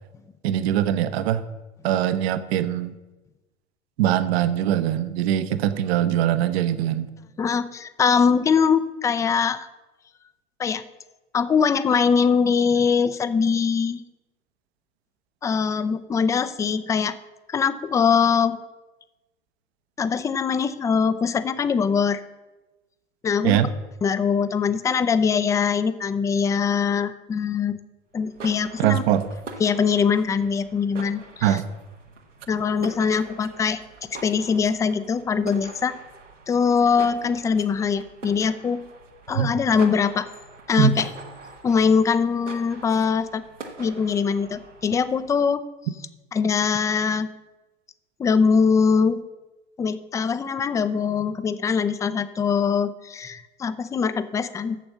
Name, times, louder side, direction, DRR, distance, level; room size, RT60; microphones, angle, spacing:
voice 1, 0.4-1.4 1.8-2.9 4.0-7.1 23.4-23.7 28.8-29.3 31.4-31.6 39.4-39.5 40.8-40.9, right 10 dB, 60° right, 12 dB, 0.9 m, -22 dB
voice 2, 7.4-9.7 10.6-10.8 11.3-14.0 15.4-17.2 17.5-18.6 20.0-22.2 23.2-23.7 24.0-27.8 28.1-29.0 29.6-31.6 32.5-33.8 34.1-36.0 36.5-38.8 39.3-40.3 40.7-41.1 41.6-43.4 43.8-45.6 46.3-47.3 48.2-49.2 49.8-54.8, left 6 dB, 10° left, 13 dB, 0.3 m, -22 dB
sound 1, 28.1-45.5, right 4 dB, 90° right, 1.4 m, -44 dB
9.0 x 6.9 x 7.3 m, 1.1 s
hypercardioid pair, 90°, 35 cm